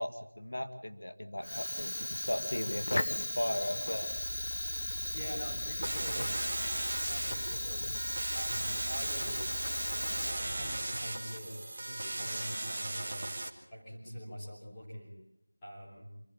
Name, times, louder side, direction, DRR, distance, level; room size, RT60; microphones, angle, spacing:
voice 1, 0.0-4.1, left 1 dB, 70° left, 7 dB, 1.8 m, -36 dB
Fire, 1.4-10.7, left 1 dB, 50° left, 0.9 m, -37 dB
sound 1, 4.0-10.9, left 2 dB, 25° left, 1.7 m, -45 dB
voice 2, 5.1-6.3 7.1-8.0 8.3-9.6 10.2-13.2 13.7-15.1 15.6-16.1, equal, 5° left, -10 dB, 3.4 m, -44 dB
sound 2, 5.8-13.5, right 2 dB, 25° right, 1.6 m, -37 dB
26.0 x 12.0 x 8.8 m, 0.87 s
figure-of-eight pair, 175°, 0 cm